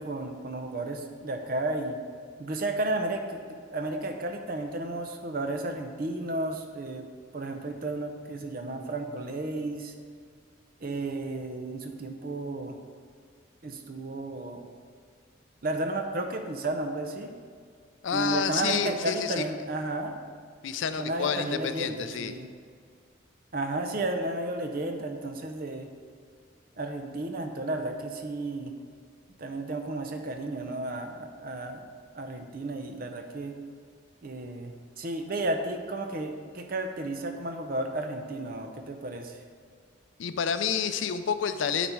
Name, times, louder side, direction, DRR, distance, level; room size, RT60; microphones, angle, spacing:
voice 1, 0.0-2.0 2.4-7.1 7.3-9.9 10.8-12.7 13.6-14.7 15.6-17.3 18.1-20.2 21.0-22.5 23.5-25.9 26.8-28.7 29.4-31.8 32.1-33.5 34.2-39.4, right 2 dB, 50° right, 5 dB, 0.7 m, -33 dB
voice 2, 18.0-19.4 20.6-22.3 40.2-41.9, left 7 dB, 85° left, 10 dB, 0.4 m, -29 dB
9.2 x 4.1 x 4.7 m, 2.1 s
head